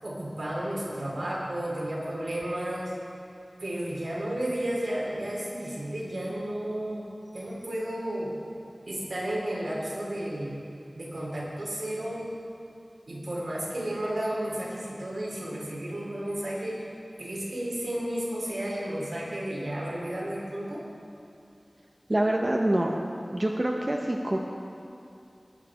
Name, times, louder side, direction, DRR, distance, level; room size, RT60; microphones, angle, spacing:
voice 1, 0.0-2.9 3.6-7.0 7.3-8.3 8.8-10.6 10.9-12.2 13.1-16.9 17.2-20.8, right 1 dB, 80° right, -5 dB, 3.0 m, -32 dB
voice 2, 22.1-23.0 23.3-24.4, right 1 dB, 35° right, 1 dB, 0.8 m, -26 dB
19.5 x 6.6 x 4.8 m, 2.7 s
wide cardioid pair, 50°, 0 cm